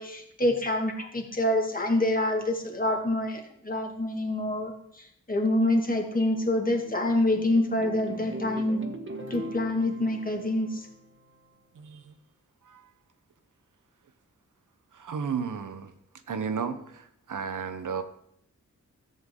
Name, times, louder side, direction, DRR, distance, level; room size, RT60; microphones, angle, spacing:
voice 1, 0.0-8.8 9.3-10.9, left 1 dB, 25° left, 2 dB, 1.9 m, -26 dB
sound 1, 6.1-11.5, right 1 dB, 40° right, 1.3 m, -41 dB
voice 2, 11.7-12.1 12.6-12.9 14.9-15.9 16.3-18.0, right 6 dB, 75° right, 9 dB, 0.9 m, -33 dB
13.5 x 8.0 x 3.8 m, 0.73 s
wide cardioid pair, 100°, 31 cm